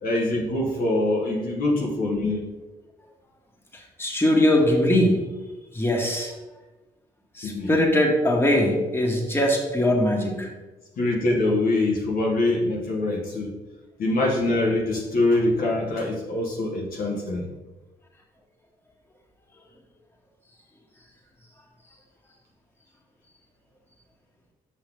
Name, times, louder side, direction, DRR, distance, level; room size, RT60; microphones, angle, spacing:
voice 1, 0.0-2.4 7.4-7.7 11.0-13.5 14.0-17.5, left 2 dB, 65° left, -1 dB, 1.3 m, -24 dB
voice 2, 4.0-5.2 5.7-6.3 7.4-10.5, left 1 dB, 15° left, -1 dB, 1.8 m, -21 dB
6.3 x 5.4 x 3.6 m, 1.1 s
supercardioid pair, 50°, 16 cm